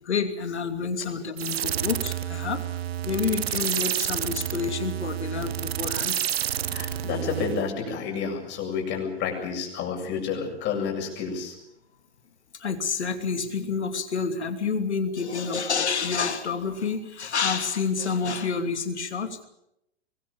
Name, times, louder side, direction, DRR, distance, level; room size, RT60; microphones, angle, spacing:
voice 1, 0.0-2.6 3.0-6.2 12.5-19.4, left 5 dB, 70° left, 8 dB, 3.0 m, -28 dB
sound 1, 1.4-7.7, right 11 dB, 60° right, 0.9 m, -29 dB
voice 2, 6.7-11.5, left 6 dB, 30° left, 2 dB, 7.8 m, -30 dB
24.0 x 21.5 x 7.4 m, 0.81 s
figure-of-eight pair, 105°, 35 cm